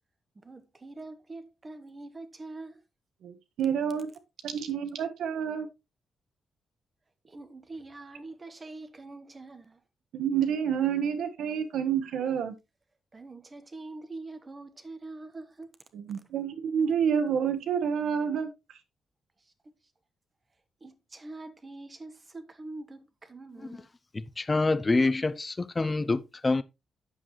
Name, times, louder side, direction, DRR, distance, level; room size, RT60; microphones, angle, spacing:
voice 1, 0.3-2.8 7.2-9.8 13.1-15.8 19.6-19.7 20.8-23.9, right 2 dB, 20° right, 1.1 m, -44 dB
voice 2, 3.2-4.1 4.4-5.7 10.1-12.6 15.9-18.5, right 8 dB, 85° right, 1.4 m, -28 dB
voice 3, 24.1-26.6, left 3 dB, 20° left, 0.5 m, -26 dB
9.9 x 7.7 x 3.1 m
wide cardioid pair, 170°, 0 cm